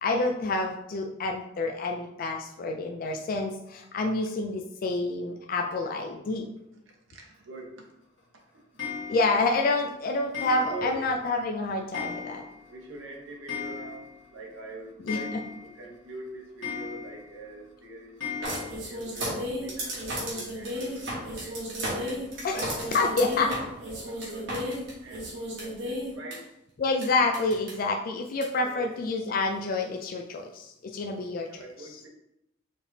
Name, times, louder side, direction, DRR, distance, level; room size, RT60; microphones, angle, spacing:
voice 1, 0.0-6.5 9.1-12.4 15.0-15.4 22.4-23.5 26.8-31.6, left 3 dB, 45° left, 2 dB, 0.3 m, -28 dB
voice 2, 7.1-7.8 10.7-11.1 12.7-14.1 14.3-15.3 15.6-21.0 21.4-22.2 22.9-23.6 23.9-25.3 25.6-26.4 28.6-28.9 31.5-32.1, right 2 dB, 75° right, -2 dB, 1.0 m, -43 dB
Clock, 8.8-9.5 10.3-11.1 11.4-11.5 11.9-12.7 13.0-13.1 13.3-14.3 14.6-14.7 15.1-15.9 16.6-17.3 18.2-18.7, left 6 dB, 70° left, 1.3 m, -37 dB
sound 1, 18.4-26.3 27.0-27.1 27.3-27.7 28.4-28.5, equal, 60° right, 1.6 m, -33 dB
4.7 x 3.4 x 2.7 m, 0.83 s
head